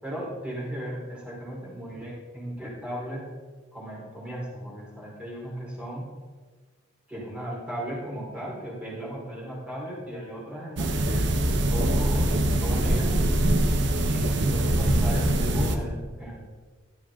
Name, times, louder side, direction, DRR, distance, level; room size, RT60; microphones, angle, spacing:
voice 1, 0.0-3.2 3.7-6.1 7.1-13.2 14.0-16.4, equal, 5° right, -6 dB, 5.2 m, -36 dB
sound 1, 10.8-15.8, right 1 dB, 60° right, 1.3 m, -23 dB
17.0 x 13.5 x 4.0 m, 1.4 s
head